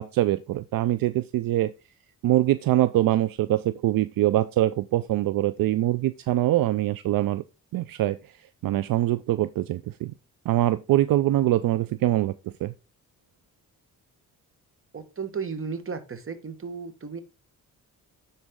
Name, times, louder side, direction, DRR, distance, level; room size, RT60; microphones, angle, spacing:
voice 1, 0.0-1.7 2.2-7.4 7.7-8.3 8.6-10.1 10.5-12.4 12.6-12.7, right 14 dB, 65° right, 0.5 m, -23 dB
voice 2, 14.9-17.2, right 5 dB, 35° right, 1.3 m, -34 dB
9.7 x 4.2 x 3.7 m
cardioid pair, 70°, 37 cm